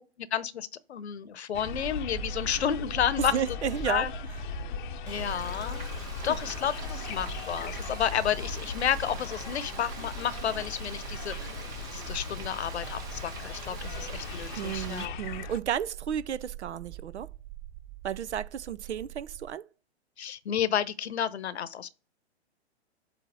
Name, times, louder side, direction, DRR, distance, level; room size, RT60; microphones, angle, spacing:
voice 1, 0.0-3.4 3.9-4.1 5.0-5.8 6.2-11.3 11.9-15.2 20.2-21.9, left 8 dB, 75° left, 0.9 m, -31 dB
sound 1, 1.5-15.6, left 8 dB, 45° left, 0.7 m, -39 dB
sound 2, 1.7-19.5, right 15 dB, 40° right, 4.2 m, -43 dB
voice 2, 3.2-4.1 14.6-17.3 18.0-19.6, right 9 dB, 80° right, 0.5 m, -32 dB
Frying (food), 5.1-15.1, right 6 dB, 10° right, 0.3 m, -45 dB
7.9 x 2.7 x 5.6 m
hypercardioid pair, 120°, 33 cm